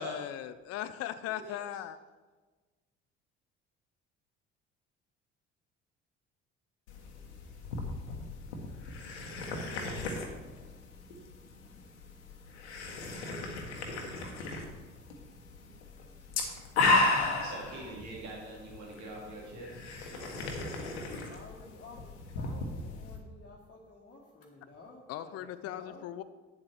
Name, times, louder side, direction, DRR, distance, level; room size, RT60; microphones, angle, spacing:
voice 1, 0.0-2.0 25.1-26.2, left 12 dB, 45° left, 12 dB, 0.6 m, -38 dB
voice 2, 1.3-1.8 17.4-20.4, right 1 dB, 55° right, -2 dB, 2.5 m, -44 dB
sound 1, 6.9-23.2, left 3 dB, 75° left, 1.3 m, -35 dB
voice 3, 20.5-26.0, left 3 dB, 25° left, -5 dB, 1.7 m, -52 dB
8.8 x 7.5 x 4.5 m, 1.3 s
figure-of-eight pair, 50°, 34 cm